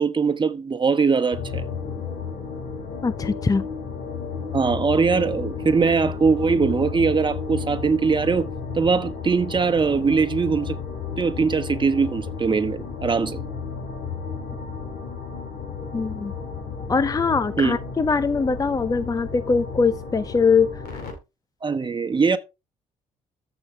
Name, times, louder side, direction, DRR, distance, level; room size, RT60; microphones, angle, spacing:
voice 1, 0.0-1.6 4.5-8.5 8.7-10.8 11.2-13.4 17.6-17.8 21.6-22.4, right 5 dB, 30° right, 1.2 m, -21 dB
sound 1, 1.3-21.1, left 5 dB, 75° left, 2.2 m, -33 dB
voice 2, 3.0-3.6 15.9-16.3 16.9-20.7, left 4 dB, 20° left, 0.7 m, -22 dB
14.0 x 5.1 x 3.3 m
hypercardioid pair, 50°, 16 cm